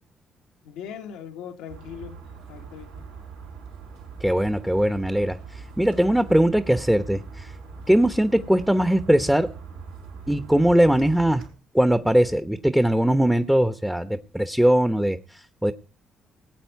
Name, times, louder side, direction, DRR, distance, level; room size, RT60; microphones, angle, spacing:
voice 1, 0.6-2.1 2.5-3.0, left 8 dB, 80° left, 7 dB, 1.5 m, -39 dB
sound 1, 1.7-11.5, right 4 dB, 90° right, 4.3 m, -41 dB
voice 2, 4.2-7.5 7.9-9.5 10.3-11.4 11.7-15.7, right 1 dB, 5° right, 11 dB, 1.0 m, -21 dB
19.0 x 8.7 x 4.7 m, 0.38 s
hypercardioid pair, 50°, 0 cm